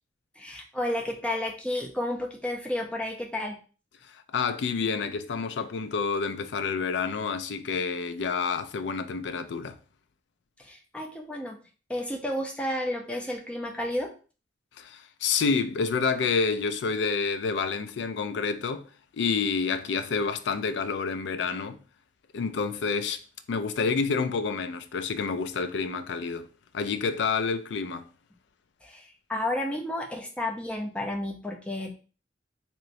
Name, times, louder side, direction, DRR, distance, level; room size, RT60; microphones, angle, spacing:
voice 1, 0.4-3.6 10.6-11.6 11.9-14.1 28.8-31.9, left 1 dB, 5° left, 0.5 m, -31 dB
voice 2, 4.1-9.8 14.8-18.8 19.1-21.8 22.3-23.2 23.5-26.5 26.7-28.1, left 5 dB, 85° left, 0.4 m, -28 dB
3.0 x 3.0 x 2.6 m
head